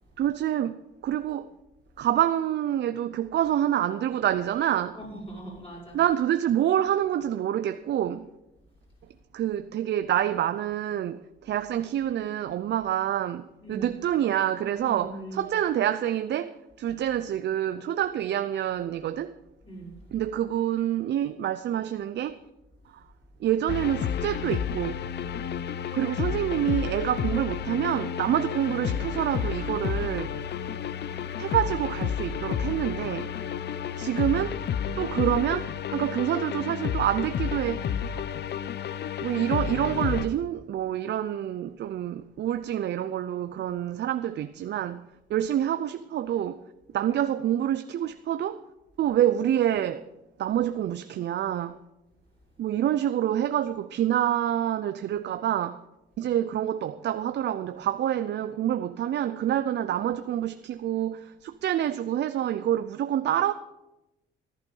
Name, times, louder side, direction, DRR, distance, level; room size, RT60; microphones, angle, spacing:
voice 1, 0.2-1.5 2.0-5.0 5.9-8.3 9.3-19.4 20.1-22.4 22.9-23.0 23.4-25.0 25.9-30.4 31.4-33.3 34.0-34.6 35.0-38.2 39.2-46.6 46.9-48.6 49.0-50.1 50.4-51.8 52.6-55.8 56.2-63.5, right 11 dB, 60° right, 0.6 m, -27 dB
voice 2, 4.9-6.0 13.6-13.9 14.7-15.5 19.6-20.1, right 1 dB, 30° left, 6.2 m, -41 dB
sound 1, 23.7-40.3, left 8 dB, 60° left, 0.7 m, -31 dB
14.5 x 11.0 x 5.4 m
cardioid pair, 90°, 20 cm